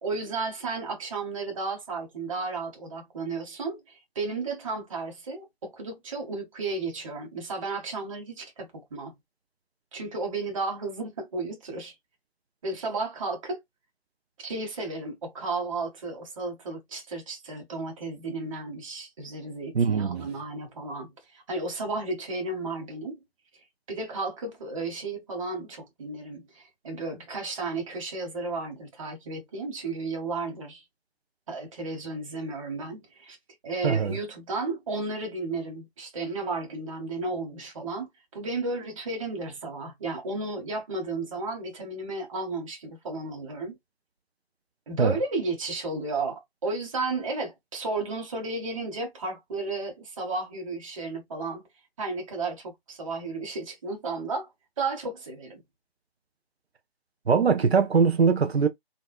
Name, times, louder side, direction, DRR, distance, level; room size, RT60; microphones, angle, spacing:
voice 1, 0.0-9.1 9.9-11.9 12.6-13.6 14.4-23.2 23.9-30.8 31.5-33.4 33.6-38.1 38.3-43.8 44.9-51.6 52.0-54.5 54.8-55.6, right 3 dB, 30° right, 1.3 m, -33 dB
voice 2, 19.7-20.3 33.8-34.2 45.0-45.2 57.3-58.7, right 5 dB, 85° right, 0.7 m, -22 dB
4.0 x 2.2 x 2.4 m
figure-of-eight pair, 155°, 31 cm